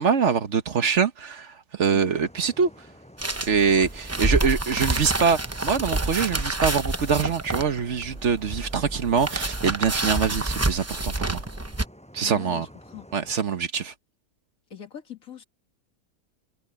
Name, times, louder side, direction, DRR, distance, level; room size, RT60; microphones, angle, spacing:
voice 1, 0.0-2.7 3.5-11.4 12.1-12.7 13.1-13.9, right 6 dB, 55° right, 1.3 m, -24 dB
sound 1, 2.0-13.4, equal, 5° left, 6.6 m, -50 dB
sound 2, 3.2-11.8, right 2 dB, 15° right, 0.6 m, -28 dB
voice 2, 4.1-4.5 12.2-13.1 14.7-15.4, left 9 dB, 70° left, 2.4 m, -42 dB
omnidirectional pair, 1.5 m